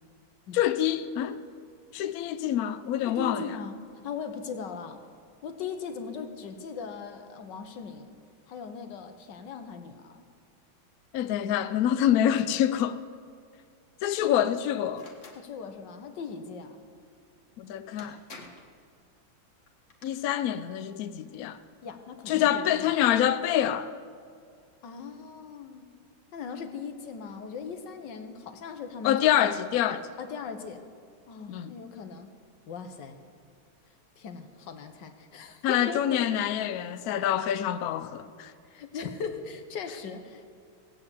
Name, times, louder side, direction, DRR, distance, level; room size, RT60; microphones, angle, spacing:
voice 1, 0.5-1.4 1.9-3.5 11.1-13.0 14.0-15.1 17.6-18.2 20.0-21.6 22.3-23.9 29.0-30.1 31.5-31.7 35.6-38.5, left 11 dB, 80° left, 0.8 m, -26 dB
voice 2, 3.1-3.8 4.0-5.0 5.4-8.2 8.5-10.2 15.3-16.8 21.8-22.9 24.8-25.9 26.3-29.5 30.2-30.8 31.3-32.3 32.7-33.2 34.2-36.3 38.7-40.4, left 5 dB, 65° left, 1.6 m, -39 dB
sound 1, 14.9-15.4 17.5-17.6 18.0-18.7 19.7-20.1, left 3 dB, 40° left, 1.6 m, -48 dB
17.5 x 8.6 x 8.2 m
omnidirectional pair, 2.3 m